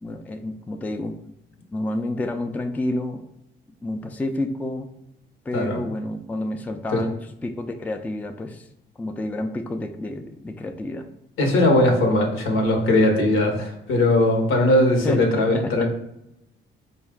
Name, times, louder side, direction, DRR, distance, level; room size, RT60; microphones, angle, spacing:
voice 1, 0.0-1.2 1.7-3.2 3.8-4.9 5.5-8.7 9.0-11.1 15.0-15.9, left 1 dB, 10° left, 6 dB, 0.3 m, -29 dB
voice 2, 11.4-15.9, left 1 dB, 85° left, 2 dB, 1.0 m, -19 dB
4.2 x 2.3 x 3.6 m, 0.83 s
cardioid pair, 90°, 20 cm